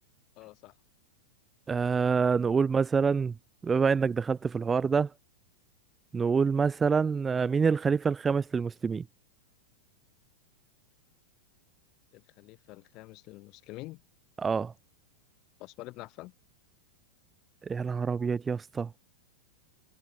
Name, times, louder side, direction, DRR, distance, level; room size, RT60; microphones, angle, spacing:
voice 1, 0.4-0.7 12.1-14.0 15.6-16.3, left 20 dB, 45° left, 5.3 m, -46 dB
voice 2, 1.7-3.3 3.6-5.1 6.1-9.0 14.4-14.7 17.6-19.0, right 5 dB, 20° right, 0.6 m, -26 dB
hypercardioid pair, 100°, 0 cm